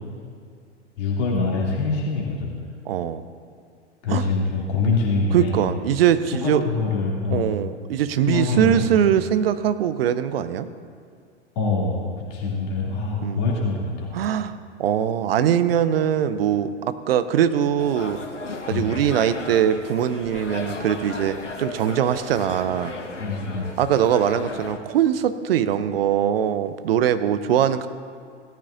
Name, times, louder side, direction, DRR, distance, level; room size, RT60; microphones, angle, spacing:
voice 1, 1.0-2.5 4.0-5.5 6.4-7.5 8.2-9.0 11.6-14.1 18.7-18.9 23.2-23.7, left 3 dB, 40° left, -3 dB, 2.7 m, -24 dB
voice 2, 2.8-3.2 4.1-4.2 5.3-6.7 7.3-10.7 13.2-13.5 14.1-14.5 14.8-18.2 18.7-22.9 23.8-27.9, right 9 dB, 55° right, 12 dB, 0.7 m, -22 dB
sound 1, 17.8-24.8, left 3 dB, 80° left, 1.2 m, -35 dB
17.5 x 13.5 x 2.6 m, 2.2 s
figure-of-eight pair, 100°, 36 cm